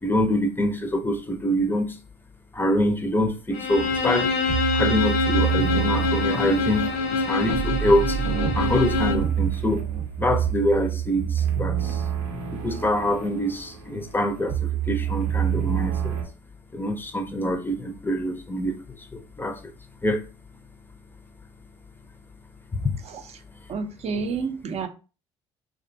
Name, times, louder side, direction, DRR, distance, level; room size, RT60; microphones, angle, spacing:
voice 1, 0.0-2.0 2.5-4.3 4.7-8.2 8.5-9.8 10.2-12.0 12.5-16.2 16.7-19.6 20.0-20.2 22.7-23.0, left 1 dB, 15° left, 0.5 m, -25 dB
Bowed string instrument, 3.5-9.3, left 4 dB, 75° left, 0.5 m, -25 dB
sound 1, 3.7-16.2, right 8 dB, 80° right, 0.7 m, -27 dB
voice 2, 23.7-24.9, right 5 dB, 50° right, 0.5 m, -29 dB
2.5 x 2.2 x 2.5 m
hypercardioid pair, 60°, 14 cm